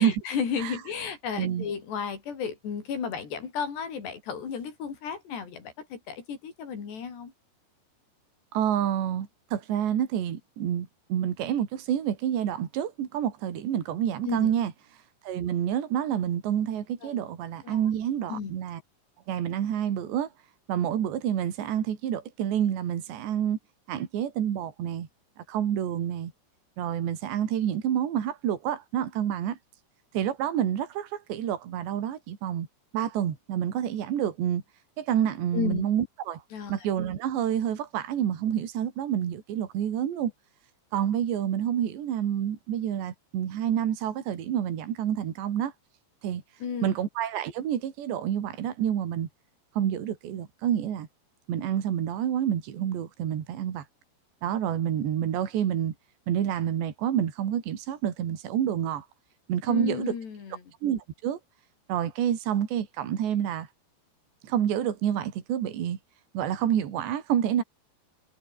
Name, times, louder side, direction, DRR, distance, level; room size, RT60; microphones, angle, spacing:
voice 1, 0.0-7.3 14.2-14.5 17.0-17.2 17.6-17.8 18.3-18.6 35.5-35.8 36.5-36.7 46.6-46.9 59.7-60.6, left 6 dB, 70° left, 6.4 m, -33 dB
voice 2, 8.5-14.7 15.2-18.8 19.3-20.3 20.7-23.6 23.9-25.1 25.5-26.3 26.8-29.6 30.1-32.7 32.9-34.6 35.0-36.4 36.7-40.3 40.9-45.7 46.2-46.4 46.8-49.3 49.8-51.1 51.5-53.8 54.4-55.9 56.3-59.1 59.5-60.2 60.8-61.4 61.9-63.7 64.4-66.0 66.3-67.6, right 10 dB, 80° right, 4.8 m, -28 dB
omnidirectional pair, 5.0 m